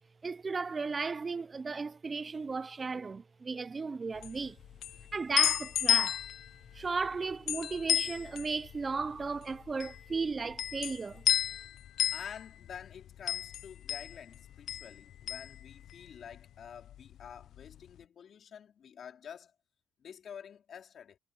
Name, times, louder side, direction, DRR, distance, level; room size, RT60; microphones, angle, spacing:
voice 1, 0.2-4.6 5.1-6.3 6.7-11.2, right 4 dB, 30° right, 0.6 m, -35 dB
sound 1, 4.2-16.4 16.7-17.8, left 11 dB, 75° left, 0.6 m, -33 dB
voice 2, 12.1-19.5 20.0-21.2, left 8 dB, 60° left, 3.8 m, -48 dB
cardioid pair, 90°, 0 cm